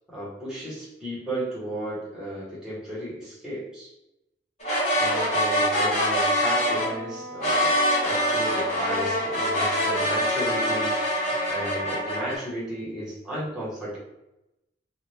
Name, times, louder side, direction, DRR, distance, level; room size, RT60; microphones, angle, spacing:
voice 1, 0.1-3.9 4.9-11.0 11.4-14.0, right 1 dB, 5° right, -9 dB, 1.1 m, -34 dB
sound 1, 4.6-6.9 7.4-12.4, equal, 35° left, 1.3 m, -24 dB
Wind instrument woodwind instrument, 6.5-10.0, equal, 60° right, 0.9 m, -40 dB
2.7 x 2.5 x 3.1 m, 0.90 s
head